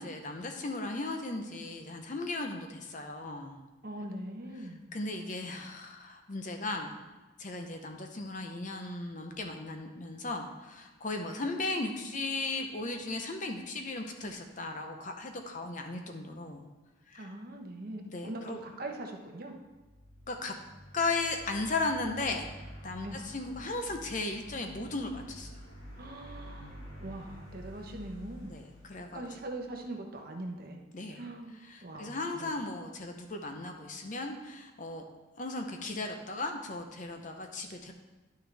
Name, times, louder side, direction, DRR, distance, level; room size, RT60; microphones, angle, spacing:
voice 1, 0.0-3.6 4.9-7.0 7.4-16.7 17.1-17.3 18.0-18.6 20.3-20.5 20.9-22.5 22.8-25.5 28.5-29.2 30.9-31.2 31.7-35.0 35.4-37.9, left 2 dB, 40° left, 4 dB, 0.8 m, -36 dB
voice 2, 3.8-4.8 17.1-19.6 23.0-23.2 25.9-28.6 29.0-30.8 31.1-32.5, right 1 dB, 45° right, 2 dB, 1.0 m, -42 dB
sound 1, 19.7-29.9, equal, 75° left, 1.8 m, -49 dB
10.5 x 6.2 x 3.4 m, 1.2 s
head